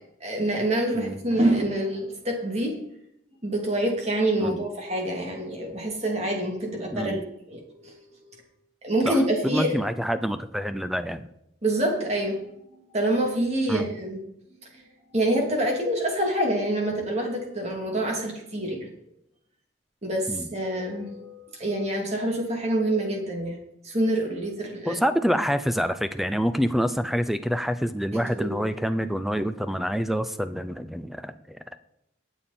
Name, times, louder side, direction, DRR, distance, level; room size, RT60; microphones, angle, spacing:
voice 1, 0.2-2.8 3.4-7.2 7.5-8.3 8.8-9.7 11.6-14.2 14.6-14.8 15.1-18.9 20.0-23.6 23.8-25.0 28.3-28.6, right 1 dB, 35° right, 0 dB, 2.8 m, -26 dB
voice 2, 9.0-11.3 13.7-13.9 20.3-20.5 24.9-31.8, equal, ahead, 11 dB, 0.5 m, -27 dB
19.0 x 7.1 x 4.4 m, 0.79 s
head